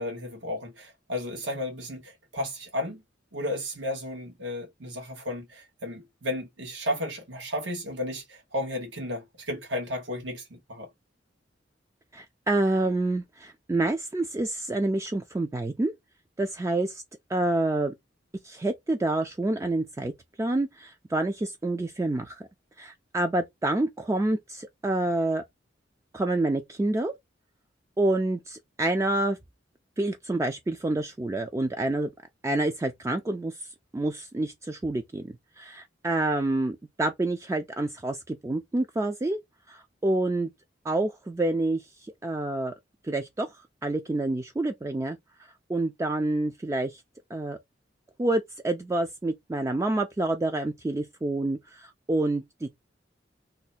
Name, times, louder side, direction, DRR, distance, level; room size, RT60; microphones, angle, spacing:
voice 1, 0.0-3.0 3.3-10.9, left 1 dB, 80° right, 1.1 m, -33 dB
voice 2, 12.1-15.9 16.4-17.0 17.3-17.9 18.4-20.1 20.4-22.4 22.8-25.4 26.1-27.1 28.0-29.4 30.0-32.1 32.4-33.6 33.9-39.4 39.7-40.5 40.8-42.7 43.0-45.2 45.7-47.0 47.3-47.6 48.2-52.7, right 2 dB, 15° right, 0.3 m, -28 dB
2.7 x 2.1 x 4.0 m
head